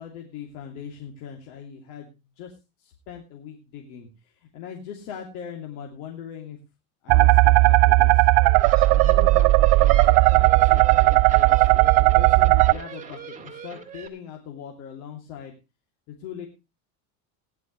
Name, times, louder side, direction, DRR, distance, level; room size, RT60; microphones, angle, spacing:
voice 1, 0.0-6.6 7.0-8.3 8.9-15.5 16.1-16.5, left 8 dB, 85° left, 1 dB, 3.0 m, -40 dB
sound 1, 7.1-12.7, right 20 dB, 60° right, 0.6 m, -16 dB
sound 2, 8.3-14.1, right 7 dB, 20° right, 2.4 m, -41 dB
18.0 x 11.0 x 3.1 m, 0.28 s
cardioid pair, 140°, 42 cm